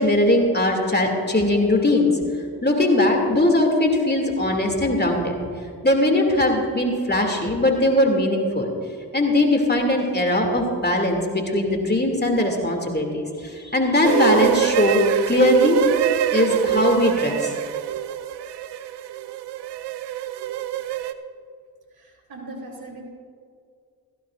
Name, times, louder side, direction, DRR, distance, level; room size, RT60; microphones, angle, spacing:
voice 1, 0.0-2.1 2.6-5.5 5.8-8.8 9.1-15.8 16.3-17.5, left 1 dB, 25° left, 1 dB, 2.6 m, -20 dB
sound 1, 14.0-21.1, right 11 dB, 85° right, 0.6 m, -24 dB
voice 2, 21.9-23.0, right 2 dB, 65° right, 0 dB, 3.5 m, -39 dB
17.0 x 15.0 x 2.6 m, 2.2 s
supercardioid pair, 40°, 40 cm